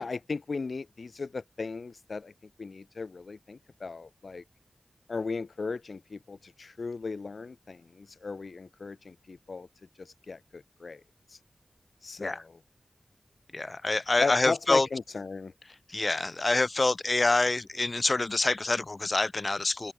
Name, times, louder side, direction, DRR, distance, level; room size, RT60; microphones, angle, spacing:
voice 1, 0.0-2.3 2.6-4.4 5.1-9.7 10.0-11.0 11.3-11.4 12.0-12.6 14.2-15.5, left 4 dB, 70° left, 0.7 m, -36 dB
voice 2, 13.5-14.9 15.9-19.9, left 2 dB, 40° left, 0.8 m, -26 dB
wide cardioid pair, 85°, 0 cm